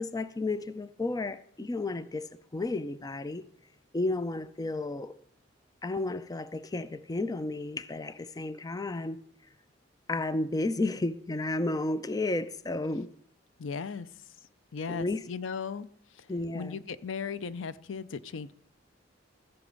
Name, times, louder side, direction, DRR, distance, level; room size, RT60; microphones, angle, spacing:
voice 1, 0.0-3.4 3.9-5.1 5.8-9.2 10.1-13.1 14.9-15.2 16.3-16.8, left 2 dB, 20° left, 0.4 m, -32 dB
voice 2, 13.6-14.1 14.7-15.9 16.1-16.3 16.5-18.5, left 5 dB, 80° left, 0.5 m, -37 dB
14.5 x 7.0 x 5.3 m
head